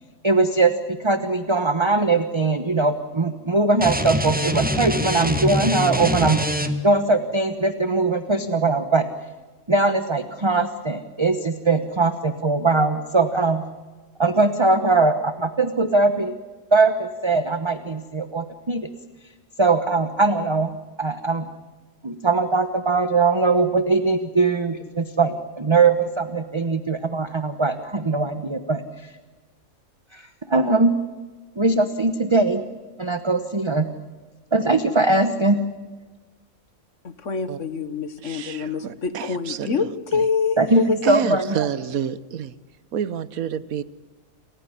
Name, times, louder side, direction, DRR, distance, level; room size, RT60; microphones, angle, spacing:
voice 1, 0.2-6.4 6.8-9.1 9.7-13.6 14.2-16.4 16.7-18.9 19.6-20.7 21.0-21.5 22.0-28.8 30.1-31.0 31.6-32.6 33.0-33.9 34.5-35.6 40.6-41.6, right 3 dB, 20° right, 10 dB, 1.0 m, -21 dB
sound 1, 3.8-7.0, equal, 5° right, 1.4 m, -24 dB
voice 2, 37.0-41.0, left 5 dB, 60° left, 13 dB, 1.7 m, -26 dB
voice 3, 38.2-40.2 41.0-42.5 42.9-43.8, right 8 dB, 85° right, 17 dB, 1.4 m, -29 dB
28.5 x 15.5 x 9.8 m, 1.3 s
omnidirectional pair, 1.4 m